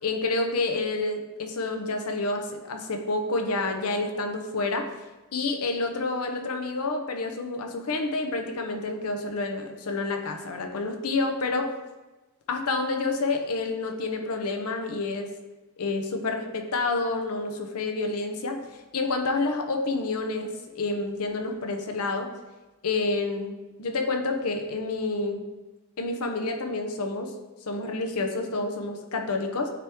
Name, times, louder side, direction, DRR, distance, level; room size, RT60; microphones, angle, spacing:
voice 1, 0.0-4.9 5.3-11.7 12.5-15.3 15.8-22.3 22.8-23.5 23.8-25.4 26.0-27.3 27.6-29.7, left 3 dB, 85° left, 5 dB, 0.7 m, -29 dB
9.3 x 3.5 x 3.0 m, 1.1 s
head